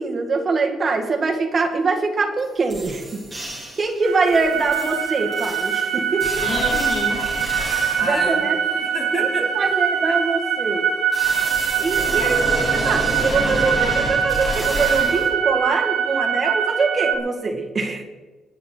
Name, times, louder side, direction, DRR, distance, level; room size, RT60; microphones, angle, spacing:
voice 1, 0.0-3.3 3.8-6.4 8.0-8.8 9.1-10.9 11.8-18.0, right 3 dB, 30° right, 2 dB, 1.9 m, -23 dB
sound 1, 2.4-2.5 2.7-3.9 4.3-8.3 11.1-15.3, right 1 dB, 10° right, 4.4 m, -29 dB
sound 2, 4.0-17.1, right 7 dB, 65° right, 2.5 m, -23 dB
voice 2, 6.4-7.3 7.6-8.4 8.9-9.7, left 3 dB, 30° left, 0 dB, 3.3 m, -29 dB
22.0 x 9.2 x 4.5 m, 1.3 s
cardioid pair, 155°, 0 cm